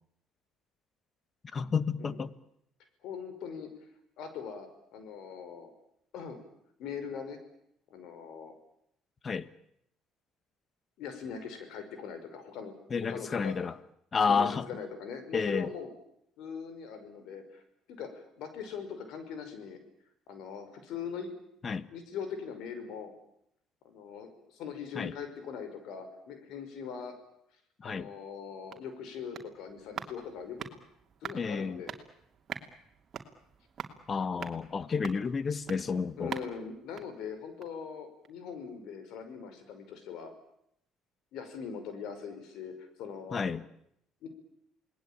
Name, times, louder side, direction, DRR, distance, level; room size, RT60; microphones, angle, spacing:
voice 1, 1.5-2.3 9.2-9.5 12.9-13.7 14.1-14.6 15.3-15.7 21.6-21.9 24.9-25.1 27.8-28.1 31.3-31.8 34.1-36.3 43.3-43.6, left 5 dB, 35° left, 1.4 m, -30 dB
voice 2, 3.0-3.7 4.2-5.7 6.1-6.4 6.8-7.4 7.9-8.5 11.0-12.7 13.1-13.6 14.3-15.9 16.4-17.6 17.9-19.8 20.3-21.3 21.9-23.1 23.8-27.1 27.8-30.6 31.2-31.9 36.2-40.3 41.3-43.4 44.2-44.3, left 6 dB, 75° left, 5.5 m, -41 dB
sound 1, 28.3-37.9 38.2-38.3, right 7 dB, 45° right, 2.9 m, -45 dB
28.0 x 20.0 x 8.9 m
supercardioid pair, 90°, 0 cm